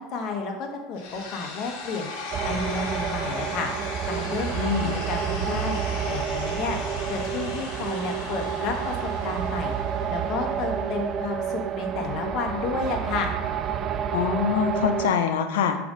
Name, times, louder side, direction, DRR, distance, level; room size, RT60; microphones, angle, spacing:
voice 1, 0.0-2.1 2.4-3.7 4.0-4.7 5.1-5.8 6.1-6.8 7.1-9.7 10.1-13.3, left 4 dB, 45° left, 2 dB, 1.1 m, -31 dB
sound 1, 1.0-10.9, left 3 dB, 70° left, 1.2 m, -37 dB
sound 2, 2.3-15.1, right 8 dB, 35° right, 0.3 m, -29 dB
voice 2, 4.6-5.0 14.1-15.8, left 7 dB, 90° left, 7 dB, 0.6 m, -24 dB
6.0 x 3.7 x 5.0 m, 1.1 s
supercardioid pair, 135°, 0 cm